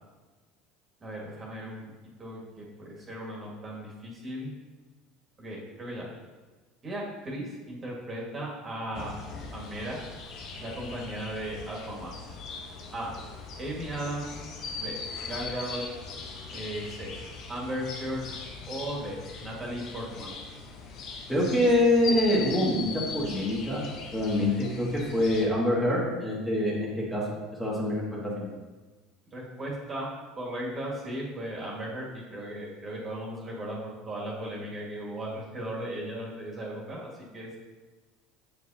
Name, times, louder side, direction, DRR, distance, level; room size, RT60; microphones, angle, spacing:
voice 1, 1.0-1.8 2.2-4.5 5.4-6.1 6.8-9.2 9.5-10.0 10.6-12.1 12.9-13.1 13.6-14.3 14.8-15.0 15.2-15.8 16.5-17.1 17.5-18.2 18.7-20.4 29.3-30.1 30.3-37.5, right 1 dB, 30° right, -3 dB, 1.7 m, -36 dB
sound 1, 8.9-25.5, left 4 dB, 55° left, 0.9 m, -40 dB
voice 2, 21.3-23.8 24.1-24.9 25.1-27.2 27.6-28.0 28.4-28.5, left 1 dB, 5° left, -5 dB, 1.7 m, -25 dB
7.4 x 5.2 x 2.8 m, 1.3 s
supercardioid pair, 115°, 0 cm